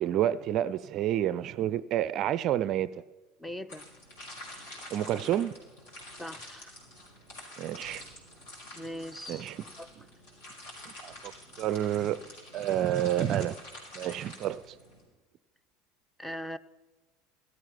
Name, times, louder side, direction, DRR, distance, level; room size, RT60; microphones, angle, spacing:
voice 1, 0.0-3.0 4.9-5.5 7.6-8.0 9.3-9.6 10.9-11.3 11.6-12.2 12.5-13.6 13.9-14.7, right 11 dB, 45° right, 0.5 m, -29 dB
voice 2, 3.4-3.8 6.2-6.7 8.7-9.5 9.8-9.9 16.2-16.6, equal, 5° left, 0.7 m, -40 dB
sound 1, 3.7-15.0, left 1 dB, 60° left, 5.3 m, -47 dB
17.0 x 13.5 x 5.7 m
figure-of-eight pair, 70°, 0 cm